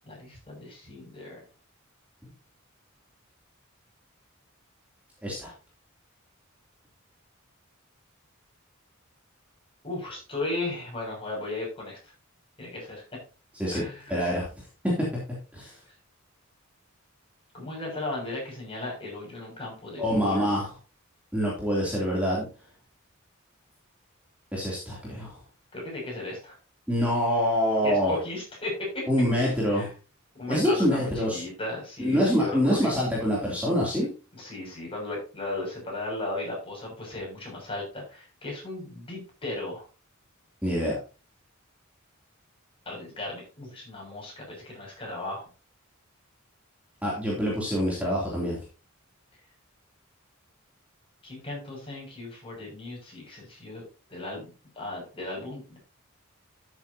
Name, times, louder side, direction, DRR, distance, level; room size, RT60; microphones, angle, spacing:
voice 1, 0.1-1.4 9.8-12.0 12.6-13.0 13.7-14.2 17.5-20.6 25.7-26.6 27.8-29.0 29.7-29.9 30.3-32.9 34.3-39.9 42.8-45.5 51.2-53.8 54.1-55.8, left 2 dB, 25° left, -2 dB, 6.4 m, -36 dB
voice 2, 14.1-14.5 15.5-15.7 20.0-20.7 21.3-22.4 24.5-25.4 26.9-28.1 29.1-29.9 30.5-31.4 32.0-34.1 40.6-41.0 47.0-48.6, equal, 5° right, -4 dB, 2.8 m, -25 dB
13.0 x 7.9 x 2.8 m, 0.33 s
head